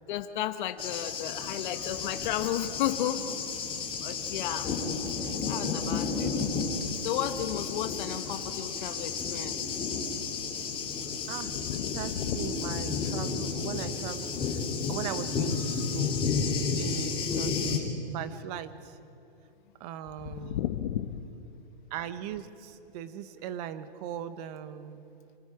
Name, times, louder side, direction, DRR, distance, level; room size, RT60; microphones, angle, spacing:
voice 1, 0.1-3.3 4.0-4.7 5.4-6.4 6.6-9.7 11.5-12.5 20.2-21.2, left 11 dB, 55° left, 7 dB, 1.2 m, -33 dB
Thunder, 0.8-17.8, left 5 dB, 20° left, 3.0 m, -32 dB
sound 1, 2.0-3.0 3.4-12.7 13.1-13.2, equal, ahead, 2.2 m, -51 dB
voice 2, 11.9-14.6 14.9-19.0 19.8-20.6 21.9-25.0, right 10 dB, 40° right, 12 dB, 1.3 m, -39 dB
28.0 x 25.5 x 4.9 m, 2.7 s
hypercardioid pair, 140°, 29 cm